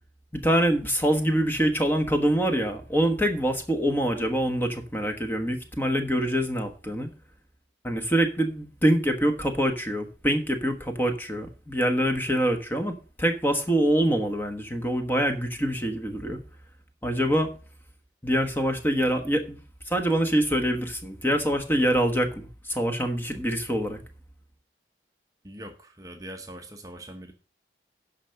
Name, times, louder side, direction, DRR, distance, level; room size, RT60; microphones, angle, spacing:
voice 1, 0.3-7.1 7.8-16.4 17.0-17.5 18.2-19.6 19.9-24.0, equal, 10° left, 5 dB, 1.3 m, -25 dB
voice 2, 25.4-27.3, right 1 dB, 20° right, 5 dB, 0.9 m, -42 dB
9.9 x 5.8 x 6.5 m, 0.37 s
head